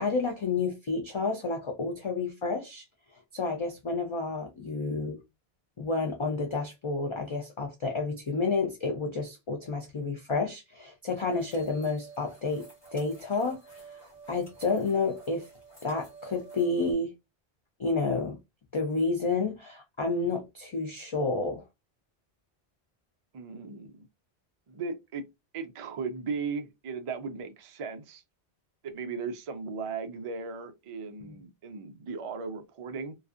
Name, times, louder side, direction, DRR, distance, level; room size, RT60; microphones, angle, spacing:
voice 1, 0.0-2.8 3.3-5.2 5.8-12.7 12.9-13.8 14.3-15.5 15.8-17.1 17.8-18.4 18.7-21.6 31.3-31.4, left 3 dB, 55° left, 0.3 m, -30 dB
sound 1, 11.2-16.9, right 5 dB, 25° left, 1.2 m, -49 dB
voice 2, 23.3-24.1 24.7-25.3 25.5-28.2 28.8-33.1, right 5 dB, 60° right, 0.3 m, -37 dB
2.4 x 2.3 x 2.4 m
omnidirectional pair, 1.1 m